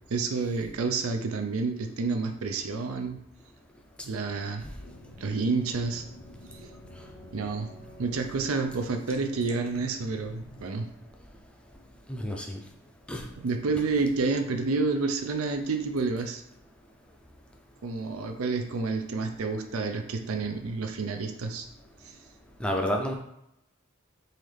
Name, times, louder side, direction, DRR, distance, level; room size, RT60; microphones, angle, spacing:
voice 1, 0.1-3.2 4.0-4.6 5.2-6.0 6.6-6.7 7.3-7.7 8.0-10.9 13.4-16.4 17.8-21.7 22.0-22.2, right 4 dB, 85° right, 6 dB, 0.5 m, -29 dB
sound 1, 4.8-10.6, left 1 dB, 65° left, 0.6 m, -48 dB
voice 2, 12.1-12.6 13.1-13.3 22.6-23.2, equal, 5° left, 1 dB, 0.4 m, -29 dB
3.9 x 3.1 x 3.2 m, 0.82 s
head